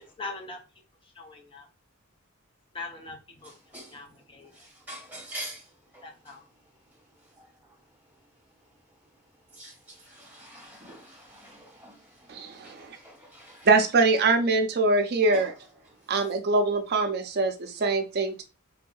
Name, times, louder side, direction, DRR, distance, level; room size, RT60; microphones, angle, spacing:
voice 1, 0.2-0.6 1.1-1.7 2.7-4.5 6.0-6.4, left 3 dB, 25° left, 0.8 m, -41 dB
voice 2, 4.5-5.6 5.9-6.0 9.5-13.7 15.3-15.5, right 1 dB, 10° right, 1.5 m, -44 dB
voice 3, 12.3-13.0 13.7-15.5 16.1-18.4, right 3 dB, 50° right, 0.5 m, -23 dB
3.4 x 2.7 x 2.3 m
head